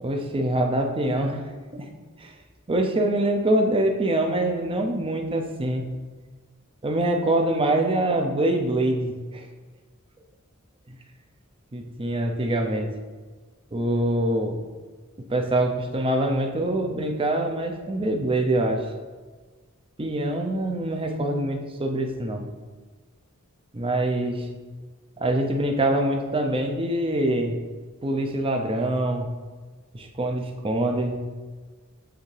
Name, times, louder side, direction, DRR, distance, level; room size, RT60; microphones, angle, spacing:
voice 1, 0.0-1.9 2.2-2.3 2.7-5.9 6.8-9.5 10.9-11.0 11.7-12.9 13.7-14.6 15.3-18.9 20.0-22.4 23.7-24.5 25.2-27.6 28.0-29.3 29.9-31.2, right 1 dB, 25° right, 3 dB, 0.6 m, -24 dB
7.9 x 3.6 x 3.3 m, 1.4 s
head